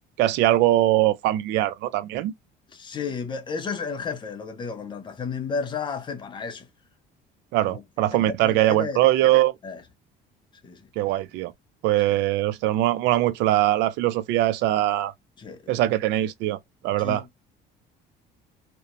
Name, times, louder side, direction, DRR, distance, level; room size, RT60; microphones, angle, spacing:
voice 1, 0.2-2.3 7.5-9.5 11.0-11.5 11.8-15.1 15.7-16.6 16.8-17.2, right 14 dB, 80° right, 0.4 m, -22 dB
voice 2, 2.7-6.7 7.7-7.8 8.4-9.0 9.6-9.8 10.6-10.9 12.1-12.2 15.4-15.9 17.0-17.4, left 5 dB, 25° left, 0.6 m, -33 dB
2.8 x 2.1 x 2.4 m
cardioid pair, 145°, 18 cm